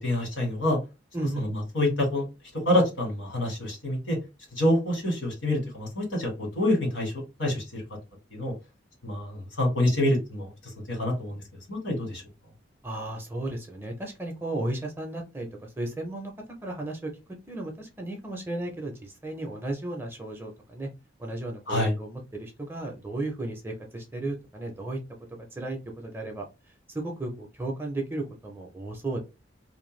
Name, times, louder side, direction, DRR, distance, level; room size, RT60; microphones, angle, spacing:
voice 1, 0.0-0.8 1.4-1.5 1.7-2.3 2.6-4.2 4.5-7.1 7.4-7.8 8.3-8.5 9.0-11.4 11.7-12.2 21.7-21.9, left 1 dB, 75° left, 0 dB, 1.5 m, -26 dB
voice 2, 1.1-1.5 12.8-16.3 16.6-17.1 17.5-20.9 21.2-25.0 25.5-26.5 26.9-29.2, right 2 dB, 10° right, 1 dB, 0.5 m, -34 dB
2.5 x 2.2 x 3.1 m, 0.27 s
head